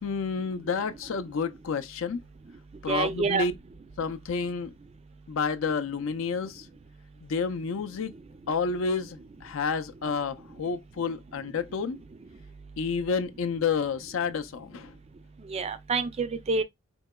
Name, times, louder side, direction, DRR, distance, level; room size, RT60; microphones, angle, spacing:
voice 1, 0.0-2.2 2.8-3.5 4.0-4.7 5.3-6.7 7.2-8.1 8.5-12.0 12.8-14.9, left 5 dB, 70° left, 0.4 m, -30 dB
voice 2, 2.9-3.4 15.5-16.6, right 4 dB, 30° right, 0.4 m, -27 dB
4.4 x 2.9 x 2.2 m
head